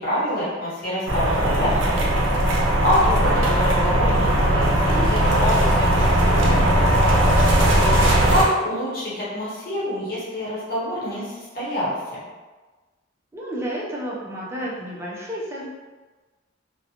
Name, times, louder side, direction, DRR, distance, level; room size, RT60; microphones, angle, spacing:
voice 1, 0.0-2.3 2.8-7.7 8.3-12.2, equal, 50° left, -8 dB, 1.0 m, -27 dB
sound 1, 1.1-8.4, right 1 dB, 80° right, 0.5 m, -18 dB
voice 2, 13.3-15.7, equal, 15° right, -6 dB, 0.5 m, -31 dB
2.5 x 2.1 x 2.8 m, 1.3 s
head